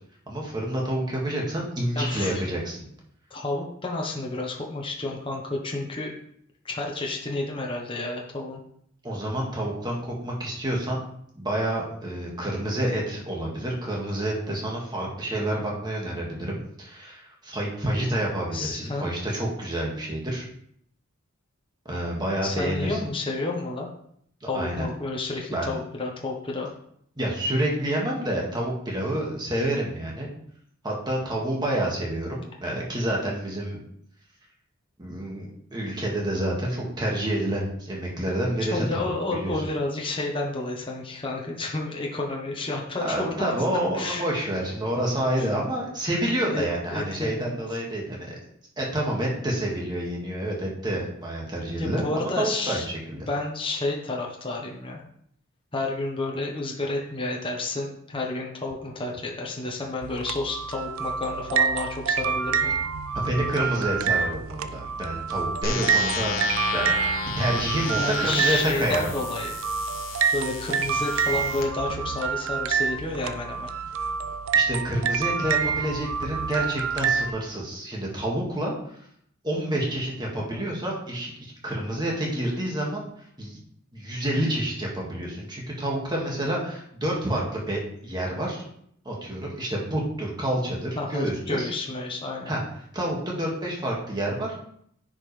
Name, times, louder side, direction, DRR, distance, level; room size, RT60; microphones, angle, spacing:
voice 1, 0.3-2.9 9.0-11.0 11.3-20.5 21.9-23.0 24.4-24.9 25.5-25.8 27.2-30.3 30.8-33.8 35.0-39.7 43.0-48.4 48.8-53.3 63.1-66.4 66.7-67.0 67.4-69.0 74.5-78.7 79.4-83.0 83.4-83.6 83.9-88.6 89.1-91.7 92.5-92.6 92.9-94.6, right 1 dB, 20° right, -3 dB, 2.0 m, -28 dB
voice 2, 1.9-2.4 3.3-6.1 6.6-8.6 18.5-19.1 22.4-23.9 24.5-26.7 38.6-43.5 43.9-44.5 45.4-45.5 46.5-47.6 51.7-52.9 53.3-55.0 55.7-62.8 68.0-69.5 70.3-73.7 80.3-80.7 91.0-92.5, left 2 dB, 25° left, -1 dB, 1.1 m, -30 dB
sound 1, 60.0-77.3, right 6 dB, 75° right, 0.4 m, -27 dB
sound 2, 65.6-71.6, left 5 dB, 45° left, 1.3 m, -33 dB
9.5 x 5.2 x 3.4 m, 0.67 s
head